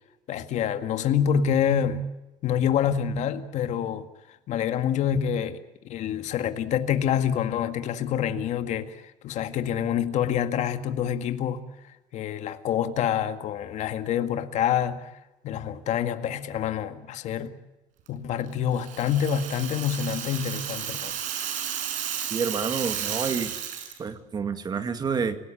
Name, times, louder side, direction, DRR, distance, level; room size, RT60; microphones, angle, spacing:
voice 1, 0.3-2.0 2.4-5.6 5.9-11.6 12.1-15.1 15.4-17.5 18.1-21.1, left 9 dB, 60° left, 1.9 m, -27 dB
Rattle (instrument), 18.7-24.0, right 9 dB, 70° right, 5.6 m, -33 dB
voice 2, 22.3-23.5 24.0-25.4, right 5 dB, 30° right, 2.2 m, -28 dB
29.0 x 18.0 x 8.6 m
cardioid pair, 135°, 14 cm